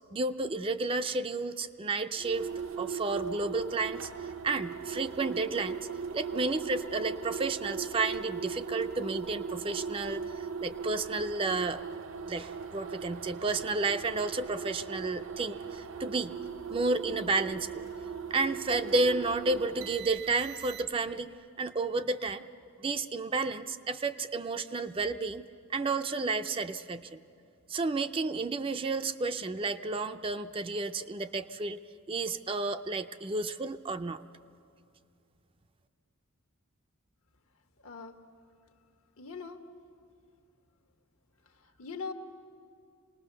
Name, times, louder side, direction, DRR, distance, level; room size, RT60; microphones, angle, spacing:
voice 1, 0.1-2.5 2.8-5.8 6.1-11.8 12.3-16.4 16.7-17.8 18.3-22.5 22.8-25.5 25.7-27.2 27.7-31.8 32.1-34.2, right 3 dB, 25° right, 9 dB, 0.4 m, -31 dB
sound 1, 2.2-21.2, right 5 dB, 65° right, 0.6 m, -39 dB
voice 2, 37.8-38.2 39.2-39.6 41.6-42.1, left 5 dB, 75° left, 7 dB, 1.3 m, -41 dB
27.0 x 19.5 x 6.7 m, 2.5 s
head